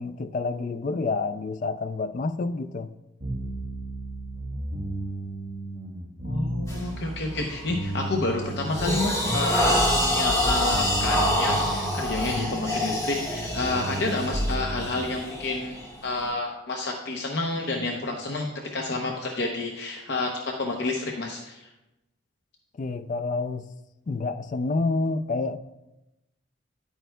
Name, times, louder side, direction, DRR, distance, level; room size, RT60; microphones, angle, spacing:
voice 1, 0.0-2.9 22.8-23.7 24.1-25.6, left 3 dB, 40° left, 0.3 m, -28 dB
sound 1, 3.2-15.1, right 1 dB, 30° right, 2.4 m, -34 dB
voice 2, 6.2-15.7 16.0-18.5 18.7-21.7, left 2 dB, 60° left, 0.7 m, -29 dB
sound 2, 6.7-6.9 7.4-7.7 8.1-16.2, left 1 dB, 15° left, 1.2 m, -26 dB
10.0 x 9.1 x 2.2 m
head